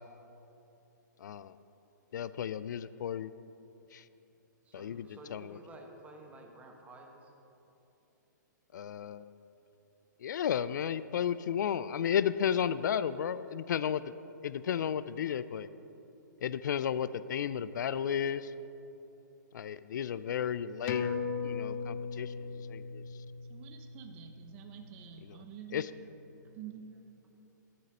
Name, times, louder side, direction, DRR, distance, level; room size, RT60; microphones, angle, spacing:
voice 1, 1.2-1.5 2.1-3.3 3.9-4.0 4.7-5.6 8.7-9.2 10.2-14.0 14.4-15.7 16.4-18.5 19.5-21.2 21.4-22.3 22.7-23.0 25.7-25.9, left 8 dB, 65° left, 15 dB, 0.4 m, -33 dB
voice 2, 4.6-7.3, right 2 dB, 10° right, 2 dB, 1.2 m, -52 dB
sound 1, 20.9-25.8 26.2-26.3, left 5 dB, 35° left, 0.7 m, -39 dB
voice 3, 23.5-25.8 26.5-26.9, right 10 dB, 35° right, 5 dB, 0.9 m, -48 dB
12.5 x 7.7 x 5.4 m, 3.0 s
hypercardioid pair, 135°, 11 cm